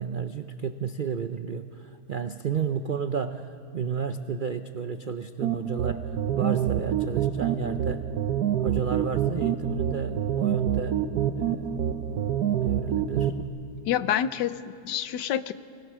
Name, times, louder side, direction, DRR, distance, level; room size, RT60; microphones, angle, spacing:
voice 1, 0.0-8.0 8.6-11.0 11.4-11.6 12.6-13.4, right 6 dB, 85° right, 9 dB, 0.4 m, -32 dB
sound 1, 5.4-13.4, right 9 dB, 70° right, 1.3 m, -27 dB
voice 2, 13.9-15.5, left 10 dB, 85° left, 13 dB, 1.4 m, -27 dB
28.5 x 21.0 x 6.2 m, 2.4 s
omnidirectional pair, 1.8 m